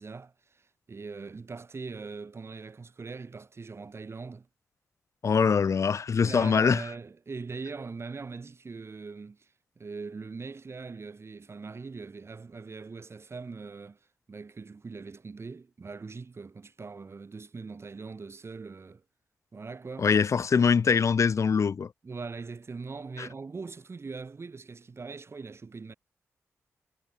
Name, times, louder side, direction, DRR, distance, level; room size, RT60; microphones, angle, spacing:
voice 1, 0.0-4.5 6.2-9.5 9.8-14.0 14.3-19.0 19.5-20.1 22.0-25.9, right 4 dB, 50° right, 3.2 m, -41 dB
voice 2, 5.2-6.8 20.0-21.9 23.2-23.3, left 6 dB, 60° left, 0.9 m, -23 dB
supercardioid pair, 50°, 6 cm